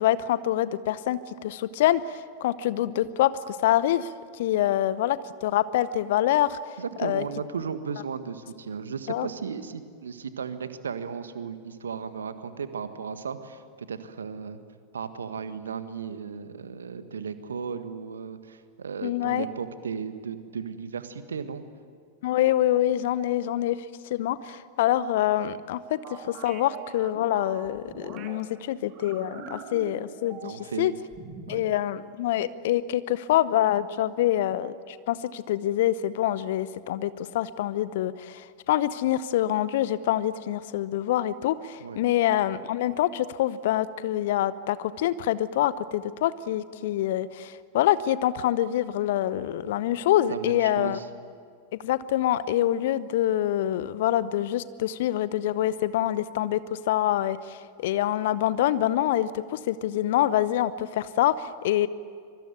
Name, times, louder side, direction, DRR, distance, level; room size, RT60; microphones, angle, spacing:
voice 1, 0.0-4.1 4.4-6.6 7.0-7.2 9.1-9.3 19.0-19.5 22.2-23.8 24.1-26.0 26.2-30.9 31.5-51.0 51.8-61.9, left 12 dB, 55° left, 17 dB, 0.8 m, -26 dB
voice 2, 6.8-14.6 14.9-21.6 30.4-30.9 31.5-31.7 41.8-42.0 49.6-49.9 50.3-51.1, right 6 dB, 70° right, 11 dB, 1.6 m, -35 dB
sound 1, 26.0-28.4 28.9-30.8 31.1-31.7, right 7 dB, 35° right, 2.6 m, -43 dB
25.0 x 24.0 x 9.2 m, 2.1 s
figure-of-eight pair, 90°, 0 cm